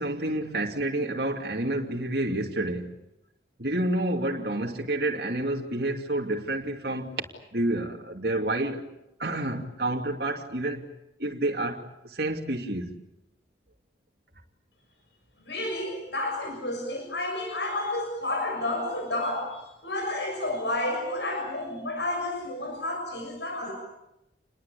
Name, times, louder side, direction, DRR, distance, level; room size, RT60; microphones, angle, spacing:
voice 1, 0.0-2.9 3.6-7.3 7.5-8.8 9.2-10.9 11.2-12.9, right 1 dB, 60° right, 2.7 m, -29 dB
voice 2, 15.5-23.7, left 1 dB, 80° left, 6.7 m, -31 dB
29.0 x 21.0 x 8.4 m
head